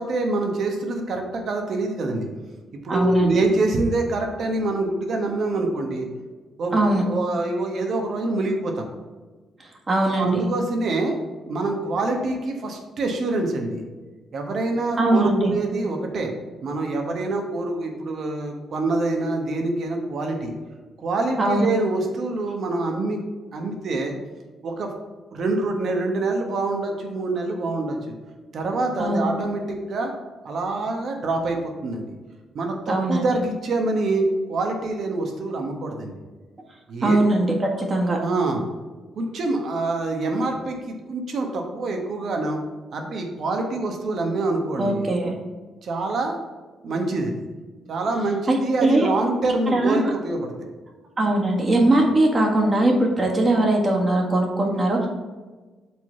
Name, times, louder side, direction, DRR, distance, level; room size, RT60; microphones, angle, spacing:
voice 1, 0.0-2.3 2.8-6.1 6.6-8.9 10.1-11.2 11.4-13.8 14.3-16.3 16.6-20.5 21.0-23.2 23.5-24.1 24.6-24.9 25.3-28.1 28.5-30.1 30.4-32.0 32.5-36.1 36.9-37.2 38.2-38.6 39.2-42.6 42.9-45.1 45.8-46.4 46.8-47.3 47.9-50.5, right 2 dB, 60° right, 3 dB, 1.3 m, -25 dB
voice 2, 2.9-3.3 6.7-7.0 9.9-10.5 15.0-15.5 21.4-21.7 29.0-29.2 32.9-33.2 37.0-38.2 44.8-45.3 48.5-49.1 49.7-50.1 51.2-55.1, right 1 dB, 30° right, 0 dB, 1.7 m, -20 dB
5.9 x 3.9 x 5.8 m, 1.3 s
cardioid pair, 90°, 0 cm